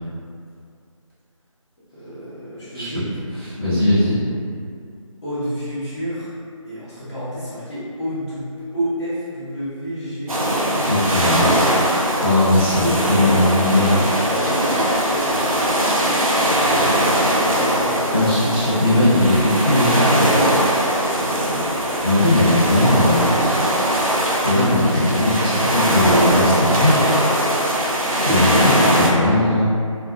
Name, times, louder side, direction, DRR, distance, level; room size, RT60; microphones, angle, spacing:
voice 1, 1.9-3.1 5.2-6.3 6.6-11.3 12.6-18.8 19.7-20.6 21.1-21.7 25.0-25.2 28.4-28.8, equal, 10° left, -13 dB, 0.5 m, -30 dB
voice 2, 3.5-4.2 10.8-11.5 12.2-14.0 18.1-19.9 22.0-23.3 24.4-27.0 28.2-29.6, left 1 dB, 40° right, -13 dB, 1.1 m, -18 dB
sound 1, 10.3-29.1, right 1 dB, 90° right, 0.5 m, -20 dB
2.3 x 2.2 x 2.4 m, 2.3 s
figure-of-eight pair, 160°, 17 cm